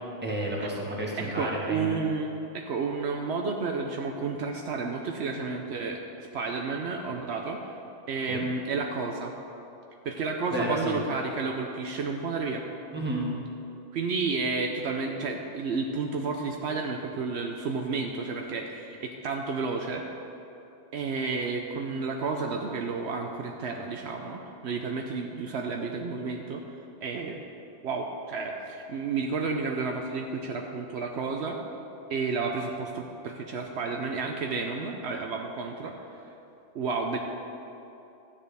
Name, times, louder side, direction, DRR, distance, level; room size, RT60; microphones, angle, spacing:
voice 1, 0.2-1.9 8.3-8.5 10.5-11.0 12.9-13.3, right 1 dB, 10° right, -4 dB, 1.4 m, -31 dB
voice 2, 1.2-7.6 8.1-9.3 10.0-12.6 13.9-20.0 20.9-26.6 27.0-27.4 27.8-31.6 32.1-35.9 36.7-37.2, right 4 dB, 70° right, 2 dB, 0.9 m, -31 dB
12.5 x 8.7 x 3.4 m, 2.9 s
omnidirectional pair, 1.2 m